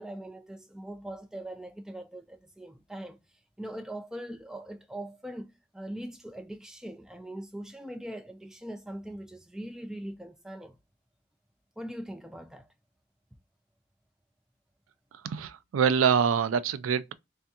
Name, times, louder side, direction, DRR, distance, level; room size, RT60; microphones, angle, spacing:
voice 1, 0.0-3.2 3.6-10.8 11.8-12.7, right 1 dB, 5° right, 0.3 m, -41 dB
voice 2, 15.2-17.1, right 7 dB, 80° right, 0.3 m, -25 dB
3.5 x 3.4 x 2.8 m
head